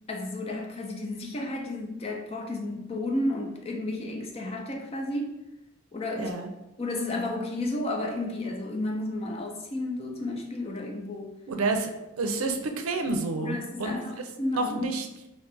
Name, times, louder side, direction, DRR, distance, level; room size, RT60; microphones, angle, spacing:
voice 1, 0.1-5.4 5.9-6.3 6.8-11.3 13.4-14.9, left 1 dB, 30° left, 1 dB, 0.4 m, -32 dB
voice 2, 6.2-6.5 11.5-11.9 12.2-14.0 14.5-15.1, right 3 dB, 85° right, 5 dB, 0.5 m, -29 dB
3.2 x 2.8 x 3.3 m, 0.94 s
head